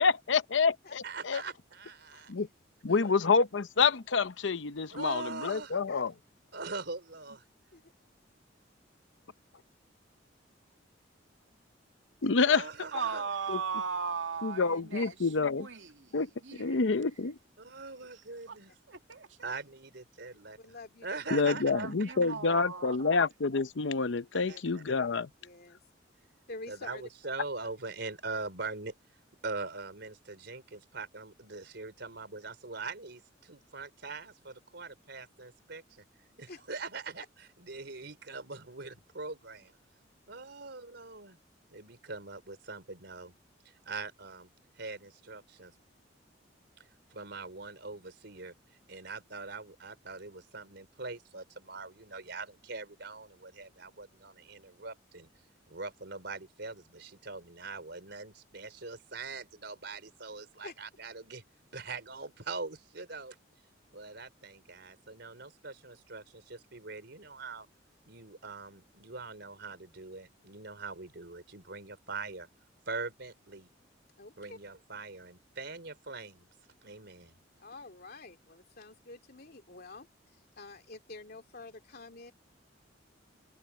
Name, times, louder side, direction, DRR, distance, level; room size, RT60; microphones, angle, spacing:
voice 1, 0.0-1.4 2.3-2.5 2.8-6.1 12.2-12.6 13.5-13.6 14.4-15.7 16.1-16.3 16.6-17.4 21.3-25.3, left 4 dB, 80° left, 0.8 m, -28 dB
voice 2, 1.0-2.3 2.9-3.0 4.9-5.8 6.5-7.4 12.4-13.3 17.6-18.7 19.4-20.6 21.0-21.7 22.0-22.3 24.3-24.8 26.7-28.9 29.4-36.0 36.4-39.7 40.3-41.4 41.7-43.3 43.9-44.5 44.8-45.7 47.1-48.5 48.9-55.3 55.7-61.4 61.7-63.4 63.9-67.7 68.1-72.5 72.9-73.7 74.4-76.5 76.8-77.3, right 3 dB, 65° right, 4.4 m, -42 dB
voice 3, 12.9-16.8 18.1-18.2 18.5-18.6 18.9-19.4 21.7-23.2, right 5 dB, 90° right, 2.3 m, -38 dB
voice 4, 20.6-21.1 24.4-24.6 25.4-25.8 26.5-27.1 36.5-36.6 60.6-60.8 74.2-74.6 77.6-82.3, left 2 dB, 55° left, 2.7 m, -48 dB
head